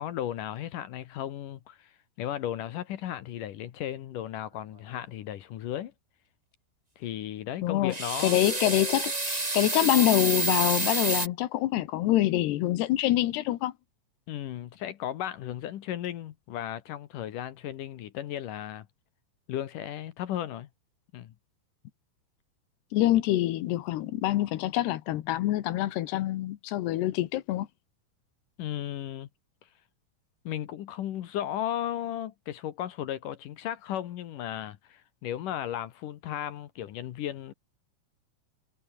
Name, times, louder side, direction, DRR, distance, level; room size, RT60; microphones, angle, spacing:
voice 1, 0.0-5.9 7.0-8.5 14.3-18.9 19.5-20.7 21.1-21.3 28.6-29.3 30.4-37.5, left 11 dB, 65° left, 2.4 m, -35 dB
voice 2, 7.6-7.9 8.2-13.7 22.9-27.7, left 15 dB, 85° left, 3.3 m, -26 dB
sound 1, 7.9-11.3, right 2 dB, 20° right, 1.2 m, -29 dB
omnidirectional pair, 4.7 m